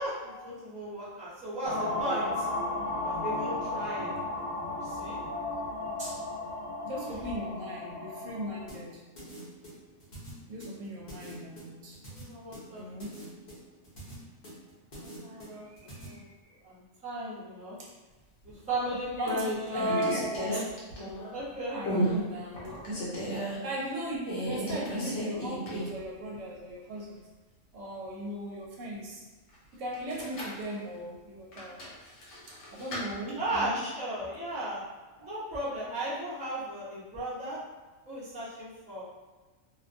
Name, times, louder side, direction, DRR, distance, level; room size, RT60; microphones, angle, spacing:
voice 1, 0.0-2.4 3.0-4.2 4.7-5.2 6.0-6.1 7.0-7.2 12.1-12.8 14.9-15.6 16.0-16.3 16.6-17.8 18.7-20.2 20.5-20.6 21.3-21.8 33.4-34.8 35.2-37.6 38.1-39.0, right 1 dB, 10° right, -10 dB, 0.5 m, -35 dB
sound 1, 1.6-8.7, left 2 dB, 90° left, 1.0 m, -34 dB
voice 2, 6.8-9.0 10.5-12.0 12.7-13.2 15.5-16.3 17.8-17.9 19.2-20.6 21.7-23.0 23.6-27.2 27.7-29.2 29.7-31.8 32.5-33.8 35.2-35.3, equal, 70° right, -3 dB, 0.9 m, -38 dB
sound 2, 8.7-16.1, right 1 dB, 40° left, 0.7 m, -46 dB
sound 3, 18.5-18.9 19.3-21.4 21.8-22.2 22.5-23.6 24.2-26.0 26.3-26.4 29.9-30.6 31.5-33.0, equal, 60° left, 1.0 m, -34 dB
2.5 x 2.2 x 2.6 m, 1.3 s
omnidirectional pair, 1.4 m